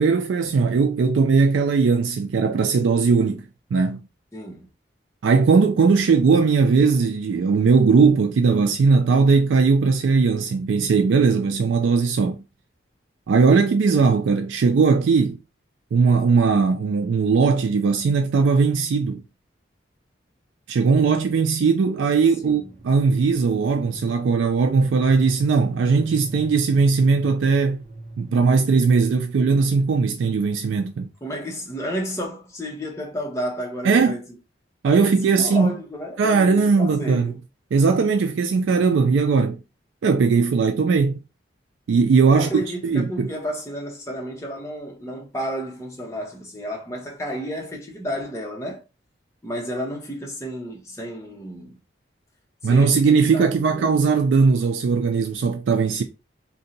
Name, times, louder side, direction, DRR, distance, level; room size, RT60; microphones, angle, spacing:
voice 1, 0.0-3.4 3.7-4.0 5.2-12.4 13.3-15.4 15.9-19.2 20.7-27.8 28.2-31.1 33.8-34.2 34.8-35.7 36.2-37.3 37.7-39.6 40.0-41.2 41.9-42.5 42.8-43.3 52.6-56.0, right 4 dB, 90° right, 0.4 m, -19 dB
voice 2, 4.3-4.7 22.4-22.7 31.2-34.2 34.9-37.4 42.3-48.8 49.4-51.8 52.6-53.9, equal, 15° left, 0.8 m, -32 dB
sound 1, 22.5-30.3, right 2 dB, 40° right, 0.7 m, -41 dB
2.7 x 2.2 x 3.9 m
head